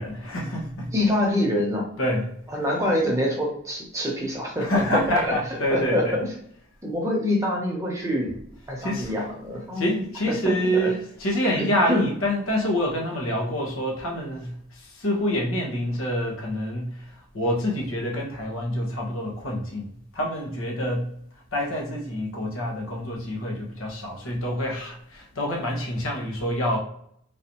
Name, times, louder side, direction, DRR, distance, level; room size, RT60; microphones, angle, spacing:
voice 1, 0.0-0.9 2.0-2.3 4.6-6.1 8.8-9.1 9.8-17.0 17.3-21.1 21.5-26.8, equal, 85° left, -1 dB, 1.1 m, -27 dB
voice 2, 0.9-1.9 2.5-4.7 5.1-5.3 5.7-6.3 6.8-8.3 8.7-10.0 10.4-10.5 10.8-10.9 11.6-12.1, left 1 dB, 15° right, -2 dB, 0.8 m, -25 dB
3.9 x 2.6 x 3.0 m, 0.67 s
head